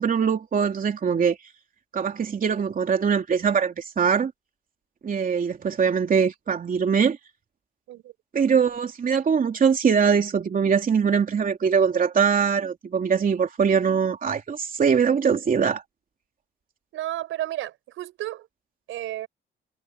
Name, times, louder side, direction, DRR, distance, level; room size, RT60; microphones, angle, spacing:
voice 1, 0.0-1.4 1.9-4.3 5.0-7.2 8.3-15.8, right 6 dB, 45° right, 3.1 m, -22 dB
voice 2, 16.9-18.5 18.9-19.3, right 14 dB, 90° right, 6.7 m, -32 dB
cardioid pair, 90°, 20 cm